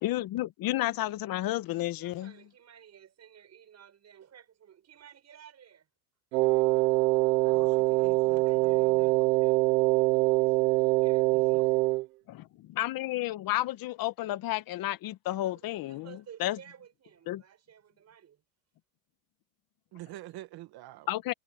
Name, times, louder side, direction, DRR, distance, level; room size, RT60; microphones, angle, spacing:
voice 1, 0.0-2.3 7.4-7.8 12.3-16.6 17.3-17.4 21.1-21.3, left 15 dB, 45° left, 1.5 m, -32 dB
voice 2, 1.9-5.9 8.2-9.9 10.4-10.6 11.0-11.8 15.4-18.4, right 9 dB, 35° right, 6.2 m, -55 dB
Wind instrument woodwind instrument, 6.3-12.1, right 21 dB, 85° right, 0.7 m, -24 dB
voice 3, 7.5-9.3 11.3-11.6 19.9-21.1, right 16 dB, 50° right, 1.9 m, -47 dB
supercardioid pair, 115°, 47 cm